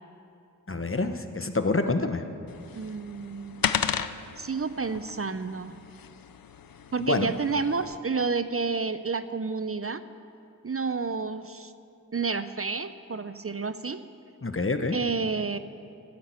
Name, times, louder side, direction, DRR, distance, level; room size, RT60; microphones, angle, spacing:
voice 1, 0.7-2.2 7.0-7.3 14.4-15.0, left 3 dB, 40° left, 8 dB, 1.1 m, -27 dB
sound 1, 2.5-8.0, left 8 dB, 85° left, 0.6 m, -35 dB
voice 2, 2.7-3.7 4.4-5.8 6.9-10.0 10.6-11.7 12.1-14.0 14.9-15.6, right 4 dB, 40° right, 12 dB, 0.6 m, -30 dB
13.0 x 10.5 x 8.2 m, 2.7 s
wide cardioid pair, 40°, 34 cm